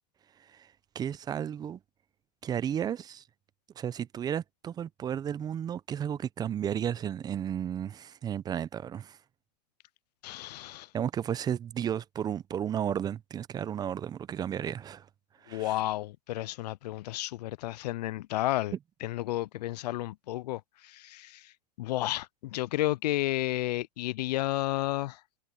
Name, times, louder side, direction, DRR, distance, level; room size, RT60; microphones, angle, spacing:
voice 1, 0.9-1.8 2.4-3.2 3.8-9.2 10.9-15.1 15.4-15.8, right 9 dB, 20° right, 0.5 m, -33 dB
voice 2, 10.2-10.9 15.5-18.7 19.0-21.5 21.8-25.2, left 16 dB, 70° left, 0.4 m, -32 dB
open air
hypercardioid pair, 125°, 21 cm